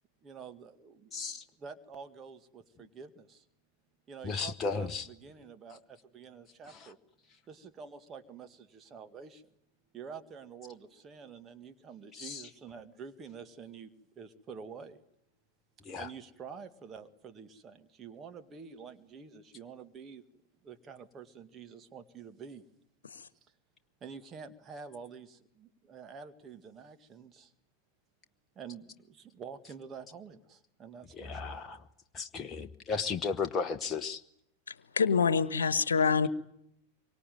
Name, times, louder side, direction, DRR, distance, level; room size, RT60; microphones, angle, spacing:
voice 1, 0.2-3.5 4.1-7.0 7.5-9.4 9.9-15.0 16.0-20.2 20.6-22.7 24.0-27.5 28.6-31.7, right 6 dB, 25° right, 8 dB, 2.0 m, -48 dB
voice 2, 1.1-1.4 4.2-5.1 12.2-12.4 15.8-16.1 31.2-31.8 32.1-34.2, left 5 dB, 20° left, 6 dB, 1.2 m, -34 dB
voice 3, 34.7-36.3, left 5 dB, 70° left, 15 dB, 1.3 m, -27 dB
25.5 x 24.0 x 9.4 m, 0.75 s
figure-of-eight pair, 90°, 0 cm